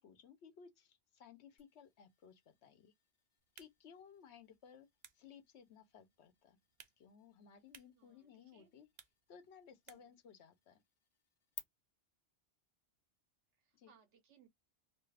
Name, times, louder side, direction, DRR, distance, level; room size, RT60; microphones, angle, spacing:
voice 1, 0.0-2.9 3.5-4.9 5.1-6.6 7.0-8.9 9.3-10.8 13.7-13.9, left 7 dB, 75° left, 1.0 m, -59 dB
sound 1, 1.6-11.6, left 6 dB, 50° left, 0.3 m, -61 dB
sound 2, 3.4-10.3, right 7 dB, 55° right, 0.5 m, -66 dB
voice 2, 7.9-8.7 9.9-10.1 13.5-14.5, right 7 dB, 90° right, 1.1 m, -69 dB
2.8 x 2.4 x 3.2 m
omnidirectional pair, 1.2 m